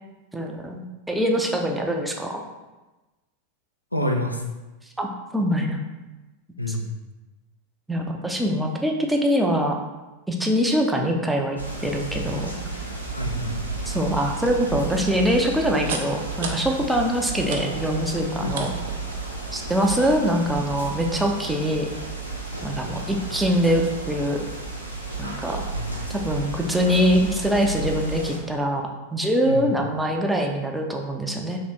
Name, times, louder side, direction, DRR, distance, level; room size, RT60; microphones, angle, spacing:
voice 1, 0.3-2.4 5.0-5.8 6.7-6.8 7.9-9.8 10.3-12.5 13.9-18.7 19.5-21.9 22.6-24.5 25.2-25.6 26.1-28.8 29.1-31.6, equal, 5° right, 1 dB, 0.5 m, -23 dB
voice 2, 3.9-4.4 6.6-6.9 13.1-13.6 18.4-18.7 25.7-26.0 29.5-29.7, equal, 85° left, 3 dB, 0.4 m, -27 dB
sound 1, 11.6-28.4, right 3 dB, 90° right, 0.7 m, -33 dB
sound 2, 14.3-19.7, right 4 dB, 55° right, 0.5 m, -38 dB
3.3 x 3.1 x 4.0 m, 1.1 s
figure-of-eight pair, 90°, 0 cm